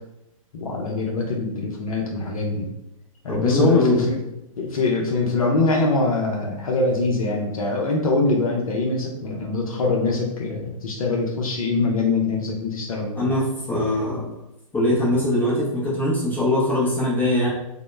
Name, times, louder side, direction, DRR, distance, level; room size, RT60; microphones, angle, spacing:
voice 1, 0.5-2.7 3.2-4.2 4.6-13.3, left 3 dB, 75° left, -1 dB, 0.6 m, -23 dB
voice 2, 3.3-4.1 13.2-14.3 14.7-17.5, left 1 dB, 10° left, -7 dB, 0.5 m, -22 dB
2.1 x 2.0 x 3.1 m, 0.88 s
hypercardioid pair, 120°, 18 cm